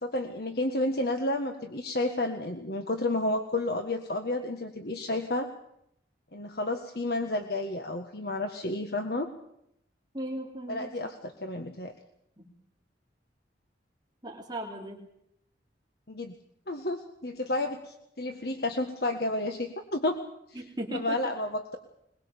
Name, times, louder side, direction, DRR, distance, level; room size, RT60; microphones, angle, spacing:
voice 1, 0.0-5.5 6.3-9.3 10.7-11.9 16.1-16.3 16.7-20.2 20.5-21.8, left 2 dB, 60° left, 5 dB, 1.7 m, -31 dB
voice 2, 10.1-11.0 12.4-12.5 14.2-15.0 20.6-21.1, right 1 dB, 25° right, 0 dB, 3.0 m, -37 dB
22.5 x 21.5 x 7.1 m, 0.75 s
head